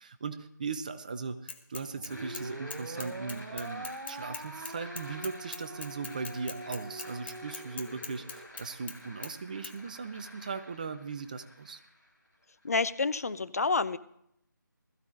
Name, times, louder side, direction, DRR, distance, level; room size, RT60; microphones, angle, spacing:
voice 1, 0.0-11.8, right 4 dB, 20° right, 10 dB, 0.5 m, -38 dB
Bicycle / Mechanisms, 1.5-2.4 2.7-9.0 9.2-9.3 9.6-9.7, left 5 dB, 30° left, 0.9 m, -42 dB
sound 1, 2.0-8.5, right 2 dB, 80° right, 1.8 m, -44 dB
sound 2, 2.1-13.0, left 1 dB, 10° left, 4.1 m, -51 dB
voice 2, 12.6-14.0, left 4 dB, 50° left, 14 dB, 0.5 m, -28 dB
20.0 x 14.5 x 2.5 m, 0.73 s
figure-of-eight pair, 165°, 11 cm